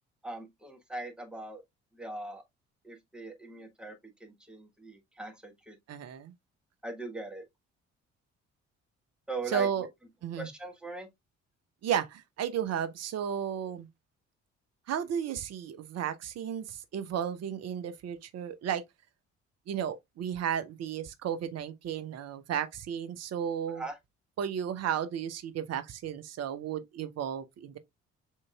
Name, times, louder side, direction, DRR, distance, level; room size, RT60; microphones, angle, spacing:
voice 1, 0.2-1.6 1.9-2.4 2.8-3.9 4.2-5.8 6.8-7.4 9.3-9.7 10.4-11.1 23.7-24.0, right 2 dB, ahead, 1.2 m, -40 dB
voice 2, 5.9-6.3 9.5-9.9 10.2-10.5 11.8-13.9 14.9-18.8 19.7-23.8 24.4-27.8, right 8 dB, 45° right, 0.8 m, -33 dB
7.2 x 3.0 x 2.3 m
figure-of-eight pair, 45°, 37 cm